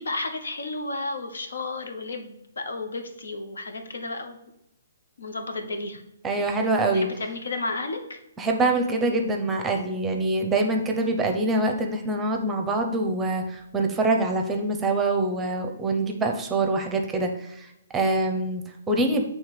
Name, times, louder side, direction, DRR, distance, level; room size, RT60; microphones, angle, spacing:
voice 1, 0.0-4.4 5.2-6.0 6.9-8.2, left 2 dB, 90° left, 5 dB, 1.0 m, -32 dB
voice 2, 6.2-7.1 8.4-19.2, right 2 dB, 10° right, 4 dB, 0.7 m, -25 dB
7.2 x 3.3 x 4.9 m, 0.83 s
hypercardioid pair, 155°, 0 cm